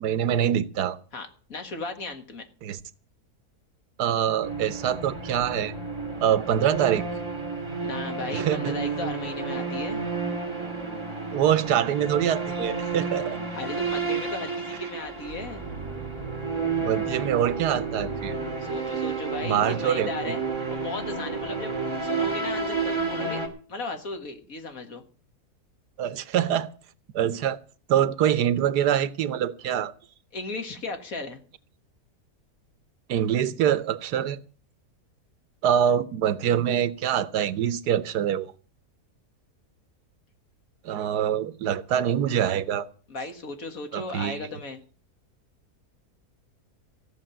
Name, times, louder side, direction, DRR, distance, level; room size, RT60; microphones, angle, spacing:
voice 1, 0.0-1.0 2.6-2.8 4.0-5.7 6.2-7.0 8.3-8.8 11.3-13.4 16.8-18.4 19.4-20.3 26.0-26.7 27.1-27.6 27.9-29.9 33.1-34.4 35.6-38.5 40.8-42.9 43.9-44.5, right 9 dB, 85° right, 1.4 m, -24 dB
voice 2, 1.1-2.4 7.8-10.0 13.5-15.6 18.6-20.4 20.7-21.7 22.0-23.4 23.7-25.0 30.3-31.4 43.1-44.8, left 3 dB, 60° left, 2.1 m, -36 dB
sound 1, 4.4-23.5, right 4 dB, 15° right, 2.9 m, -31 dB
15.0 x 6.6 x 8.9 m
omnidirectional pair, 1.7 m